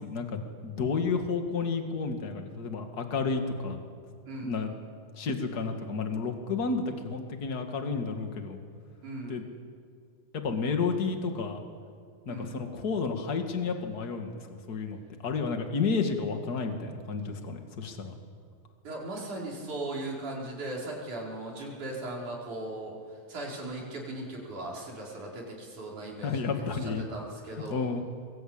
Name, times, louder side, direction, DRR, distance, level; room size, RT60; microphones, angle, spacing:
voice 1, 0.0-3.8 4.4-4.7 5.1-8.6 9.3-9.4 10.4-11.6 12.2-18.1 26.2-27.0 27.7-28.0, left 4 dB, 35° left, 5 dB, 1.8 m, -31 dB
voice 2, 9.0-9.4 12.3-12.6 18.8-22.9 23.3-26.7 27.0-27.9, right 2 dB, 50° right, -2 dB, 5.9 m, -38 dB
24.0 x 22.5 x 8.8 m, 2.1 s
omnidirectional pair, 4.5 m